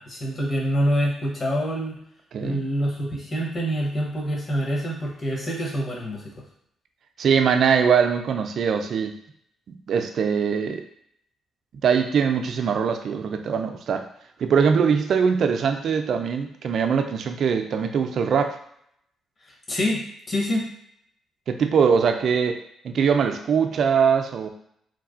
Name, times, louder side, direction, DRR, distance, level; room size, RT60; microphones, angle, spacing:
voice 1, 0.0-1.9 2.4-6.2 19.7-20.6, equal, 40° left, -2 dB, 1.0 m, -26 dB
voice 2, 7.2-9.2 9.7-10.8 11.8-14.1 14.4-18.6 21.5-24.5, right 6 dB, 60° right, 6 dB, 0.3 m, -22 dB
3.1 x 2.3 x 2.5 m, 0.71 s
hypercardioid pair, 50°, 0 cm